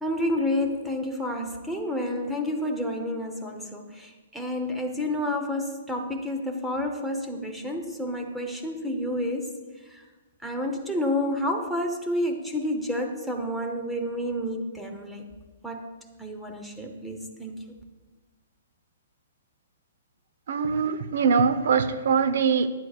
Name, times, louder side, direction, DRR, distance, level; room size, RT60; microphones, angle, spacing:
voice 1, 0.0-9.5 9.9-10.0 10.4-15.2 15.6-15.9 16.2-17.5, left 1 dB, ahead, 2 dB, 0.9 m, -29 dB
voice 2, 20.5-22.7, right 5 dB, 65° right, 12 dB, 0.8 m, -22 dB
20.0 x 9.5 x 2.4 m, 1.3 s
hypercardioid pair, 165°, 0 cm